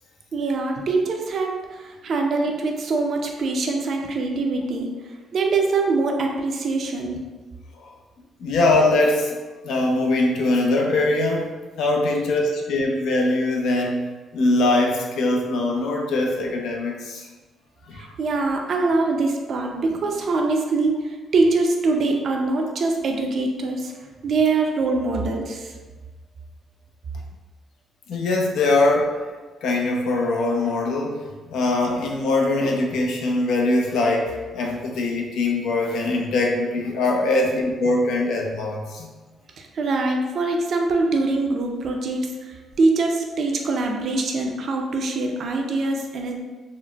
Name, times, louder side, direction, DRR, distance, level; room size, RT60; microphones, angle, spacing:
voice 1, 0.3-7.2 17.9-23.9 24.2-25.7 39.6-46.3, right 3 dB, 60° right, 2 dB, 0.4 m, -23 dB
voice 2, 8.4-9.4 9.6-11.5 11.8-14.0 14.3-17.3 17.9-18.1 28.1-29.2 29.6-39.1, left 2 dB, 80° left, 0 dB, 0.5 m, -22 dB
3.9 x 2.0 x 2.2 m, 1.3 s
cardioid pair, 90°, 0 cm